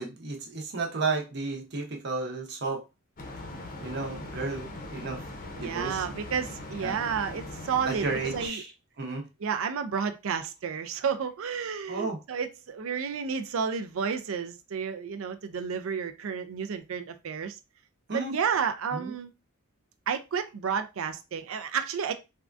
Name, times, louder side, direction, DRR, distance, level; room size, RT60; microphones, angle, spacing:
voice 1, 0.0-2.8 3.8-5.2 5.6-6.0 6.8-7.0 7.9-8.7 9.0-9.3 11.9-12.2 18.1-18.4 18.9-19.1, right 3 dB, 50° right, 0.8 m, -32 dB
sound 1, 3.2-8.5, left 2 dB, 40° left, 0.6 m, -40 dB
voice 2, 5.5-8.6 9.4-17.6 18.3-19.3 20.1-22.1, right 6 dB, 70° right, 0.4 m, -31 dB
3.5 x 2.2 x 2.4 m
head